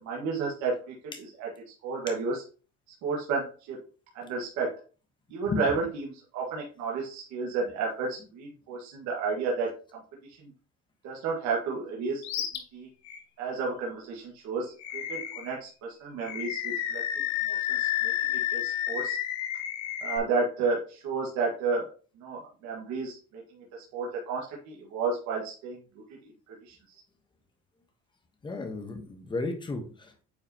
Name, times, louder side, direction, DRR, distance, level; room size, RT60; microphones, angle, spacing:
voice 1, 0.0-1.5 1.8-2.4 3.0-3.8 4.1-4.8 5.3-10.0 10.4-10.5 11.0-12.2 12.7-12.9 13.4-17.0 17.5-19.2 20.0-21.9 22.2-23.4 23.7-26.8, right 4 dB, 70° right, -3 dB, 1.8 m, -32 dB
Animal, 12.2-12.6 13.0-13.2 14.8-15.5 16.2-20.2, left 12 dB, 65° left, 1.3 m, -31 dB
voice 2, 28.4-30.2, left 3 dB, 15° left, 5 dB, 1.2 m, -33 dB
9.0 x 4.8 x 3.0 m, 0.37 s
cardioid pair, 165°, 30 cm